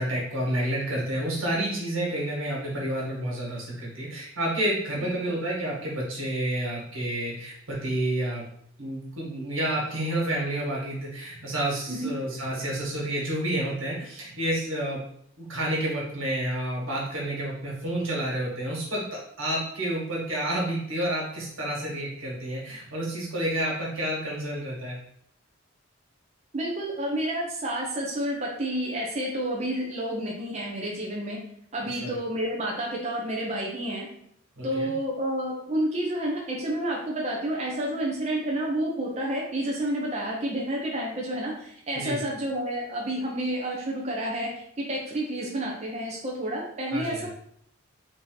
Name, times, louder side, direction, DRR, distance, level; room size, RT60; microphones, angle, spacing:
voice 1, 0.0-8.4 8.8-15.0 15.4-19.0 19.4-25.0 31.9-32.2 34.6-34.9 41.9-42.2 46.9-47.3, right 1 dB, 85° right, -3 dB, 1.7 m, -29 dB
voice 2, 5.0-5.3 11.9-12.1 26.5-31.4 31.7-34.1 34.6-47.3, right 1 dB, 35° right, -3 dB, 0.6 m, -30 dB
3.7 x 2.8 x 3.9 m, 0.67 s
head